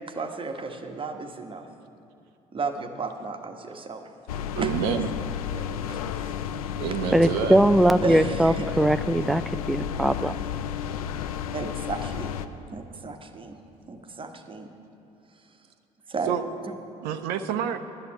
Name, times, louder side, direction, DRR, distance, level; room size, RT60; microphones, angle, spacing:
voice 1, 0.1-1.7 2.5-4.1 4.4-4.7 5.5-6.0 8.0-8.7 11.5-12.4 12.7-13.6 13.9-14.7 16.1-16.4, right 4 dB, 30° right, 5 dB, 1.2 m, -34 dB
sound 1, 4.3-12.5, left 9 dB, 75° left, 0.5 m, -32 dB
voice 2, 4.5-5.1 6.8-7.6 16.3-16.4 17.0-17.8, right 8 dB, 60° right, 9 dB, 0.7 m, -28 dB
voice 3, 7.1-10.3, right 1 dB, ahead, 13 dB, 0.3 m, -21 dB
11.0 x 7.7 x 8.8 m, 2.7 s
figure-of-eight pair, 55°, 19 cm